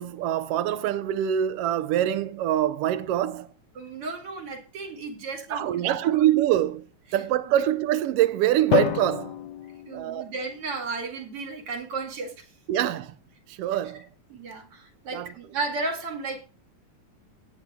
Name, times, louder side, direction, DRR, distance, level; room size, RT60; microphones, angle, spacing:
voice 1, 0.0-3.5 5.5-6.9 7.1-9.4 9.9-10.3 12.7-13.1 13.5-14.1 15.1-15.3, right 12 dB, 75° right, 1.4 m, -24 dB
voice 2, 3.7-6.3 7.6-7.7 9.9-12.5 14.3-16.4, right 3 dB, 50° right, 2.9 m, -34 dB
Drum, 8.7-10.8, left 14 dB, 75° left, 1.8 m, -29 dB
17.5 x 9.2 x 2.2 m
omnidirectional pair, 3.3 m